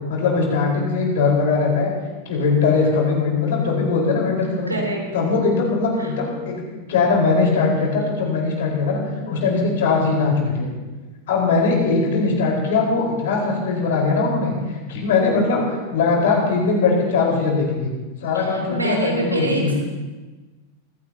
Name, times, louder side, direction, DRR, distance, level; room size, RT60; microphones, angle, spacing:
voice 1, 0.1-1.9 2.2-4.7 5.1-6.6 6.9-10.7 11.3-17.9 18.2-19.7, left 4 dB, 55° left, -1 dB, 4.9 m, -20 dB
voice 2, 4.7-5.0 6.0-6.1 18.3-19.7, right 2 dB, 80° right, -1 dB, 3.7 m, -25 dB
24.5 x 16.0 x 3.0 m, 1.3 s
figure-of-eight pair, 90°, 0 cm